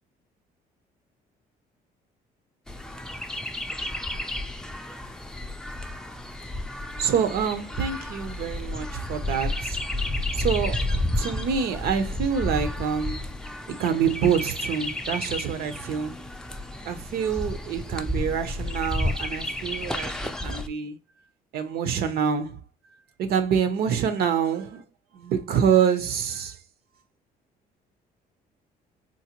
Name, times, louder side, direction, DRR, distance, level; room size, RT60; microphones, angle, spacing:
Chirp tweet, 2.7-20.7, left 1 dB, 5° left, 0.4 m, -31 dB
voice 1, 7.0-9.8 10.3-13.3 13.7-16.2 16.9-21.0 21.5-22.6 23.2-24.8 25.1-26.6, right 7 dB, 65° right, 0.6 m, -26 dB
3.9 x 2.1 x 2.8 m
cardioid pair, 110°, 17 cm